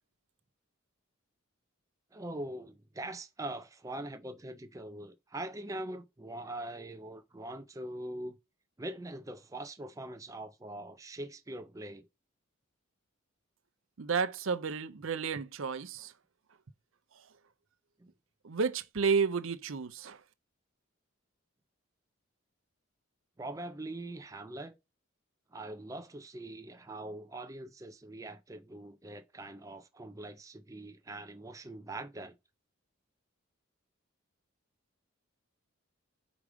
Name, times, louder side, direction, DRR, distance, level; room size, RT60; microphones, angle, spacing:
voice 1, 2.1-8.4 8.8-12.1 18.0-18.1 23.4-24.8 25.5-32.4, right 1 dB, 15° right, 0.4 m, -42 dB
voice 2, 14.0-16.1 18.4-20.2, right 5 dB, 70° right, 0.6 m, -31 dB
4.9 x 4.8 x 5.0 m
head